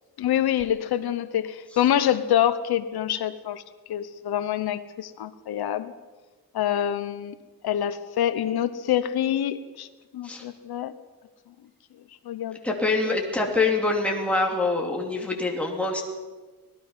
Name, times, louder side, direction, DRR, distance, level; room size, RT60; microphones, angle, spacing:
voice 1, 0.2-3.6 3.9-5.9 6.5-7.4 7.6-9.9 10.1-10.9 12.2-12.6 13.0-13.2, left 10 dB, 85° left, 10 dB, 1.1 m, -26 dB
voice 2, 12.6-16.0, left 3 dB, 5° left, -1 dB, 2.9 m, -25 dB
25.0 x 18.5 x 5.7 m, 1.3 s
wide cardioid pair, 170°, 37 cm